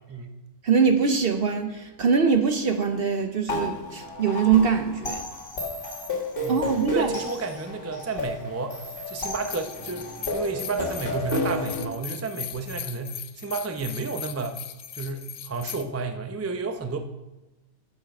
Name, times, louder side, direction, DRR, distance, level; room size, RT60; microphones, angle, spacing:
voice 1, 0.6-5.2 6.5-7.1, right 6 dB, 55° right, 0.7 m, -23 dB
sound 1, 3.5-11.8, left 1 dB, 40° left, 1.8 m, -32 dB
voice 2, 6.9-14.6 14.9-17.0, right 4 dB, 20° right, 0.4 m, -31 dB
sound 2, 9.2-15.8, left 10 dB, 70° left, 0.9 m, -39 dB
8.9 x 7.3 x 5.9 m
omnidirectional pair, 1.5 m